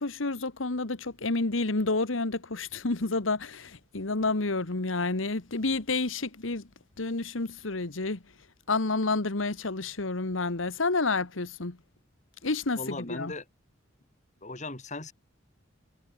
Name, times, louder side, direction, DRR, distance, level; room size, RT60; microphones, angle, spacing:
voice 1, 0.0-6.6 7.0-8.2 8.7-11.8 12.4-13.3, left 3 dB, 80° left, 1.5 m, -29 dB
voice 2, 12.8-13.4 14.4-15.1, left 2 dB, 35° left, 4.1 m, -37 dB
head